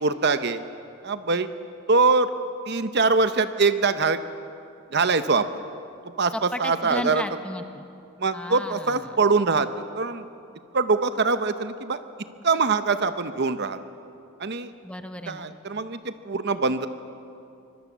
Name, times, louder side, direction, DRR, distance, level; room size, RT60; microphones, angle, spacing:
voice 1, 0.0-0.6 1.0-1.5 1.9-2.3 2.7-4.2 4.9-5.5 6.2-7.2 8.2-9.7 9.9-10.3 10.7-12.0 12.4-13.8 14.4-14.7 15.3-16.9, right 4 dB, 50° right, 11 dB, 0.9 m, -23 dB
voice 2, 6.3-7.8 8.3-9.0 14.8-15.5, left 1 dB, 5° left, 7 dB, 1.1 m, -34 dB
25.0 x 21.5 x 7.3 m, 2.6 s
head